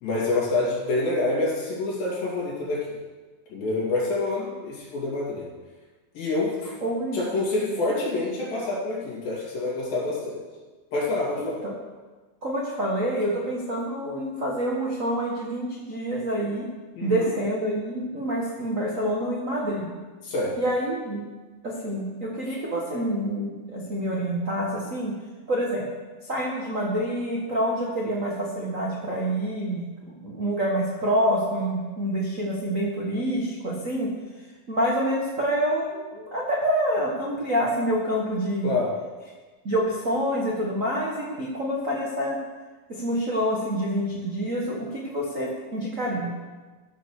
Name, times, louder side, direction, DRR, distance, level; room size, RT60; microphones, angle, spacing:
voice 1, 0.0-2.8 3.5-5.5 6.1-6.7 7.1-10.4 10.9-11.6 17.0-17.3 20.2-20.5 22.5-22.6 38.6-38.9, left 2 dB, 70° left, -5 dB, 4.6 m, -27 dB
voice 2, 6.8-7.2 11.4-11.7 12.4-16.7 17.0-19.9 20.6-21.3 21.6-25.1 25.5-25.9 26.2-34.1 34.7-38.7 39.6-42.4 42.9-46.3, equal, 70° right, -4 dB, 0.7 m, -27 dB
14.0 x 5.5 x 6.4 m, 1.3 s
omnidirectional pair, 4.2 m